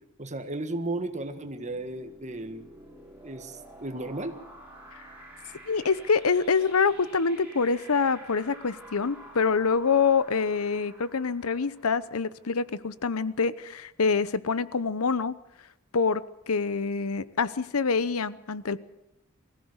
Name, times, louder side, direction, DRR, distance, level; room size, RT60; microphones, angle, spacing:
voice 1, 0.2-2.6 3.2-4.4, right 2 dB, 35° right, 8 dB, 1.7 m, -34 dB
sound 1, 1.3-12.7, right 1 dB, 10° right, 7.2 m, -50 dB
voice 2, 5.7-15.3 15.9-18.8, left 5 dB, 80° left, 16 dB, 0.9 m, -26 dB
23.5 x 16.0 x 8.1 m, 0.89 s
head